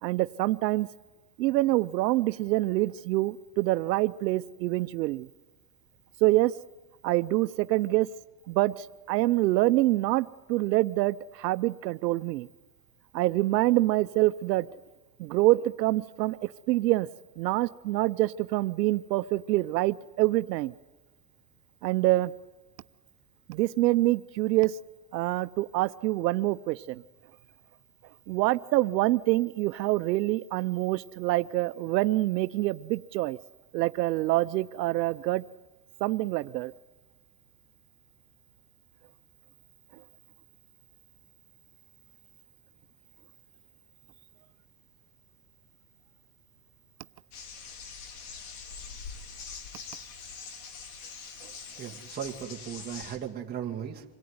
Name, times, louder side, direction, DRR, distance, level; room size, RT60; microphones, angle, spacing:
voice 1, 0.0-0.9 1.4-5.3 6.2-6.5 7.0-8.1 8.5-12.5 13.1-14.7 15.2-17.1 17.4-20.7 21.8-22.3 23.5-24.8 25.1-27.0 28.3-33.4 33.7-35.4 36.0-36.7, right 18 dB, 85° right, 13 dB, 0.8 m, -26 dB
sound 1, 47.3-53.2, left 6 dB, 65° left, 3.6 m, -43 dB
voice 2, 51.8-54.0, right 9 dB, 20° right, -1 dB, 1.8 m, -37 dB
26.5 x 18.0 x 9.5 m, 1.2 s
supercardioid pair, 150°, 49 cm